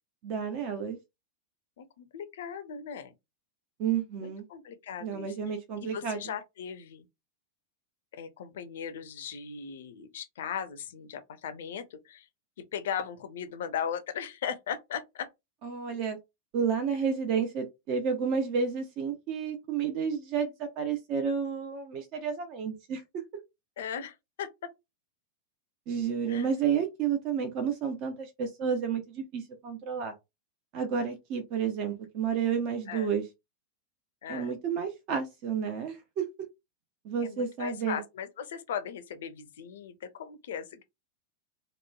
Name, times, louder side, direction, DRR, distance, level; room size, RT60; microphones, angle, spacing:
voice 1, 0.2-1.0 3.8-4.4 5.0-6.3 15.6-16.2 16.5-23.0 25.9-30.1 30.7-33.2 34.3-36.3 37.0-38.0, right 6 dB, 40° right, 0.5 m, -31 dB
voice 2, 1.8-3.1 4.2-5.3 5.8-7.1 8.1-12.3 12.6-15.3 23.8-24.7 26.3-26.5 32.9-33.1 34.2-34.5 37.2-40.8, left 8 dB, 60° left, 0.4 m, -38 dB
2.9 x 2.1 x 2.3 m
figure-of-eight pair, 90°, 0 cm